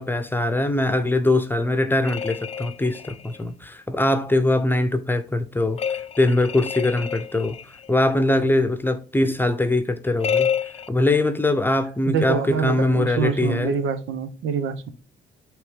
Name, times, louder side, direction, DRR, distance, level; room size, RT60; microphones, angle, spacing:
voice 1, 0.0-7.6 7.9-10.5 10.9-13.7, left 2 dB, 10° left, 0.8 m, -22 dB
sound 1, 2.0-3.4 5.8-7.9 10.2-10.9, left 7 dB, 30° left, 0.4 m, -28 dB
voice 2, 12.1-14.9, right 6 dB, 80° right, 0.8 m, -25 dB
8.2 x 3.2 x 3.6 m
cardioid pair, 90°, 20 cm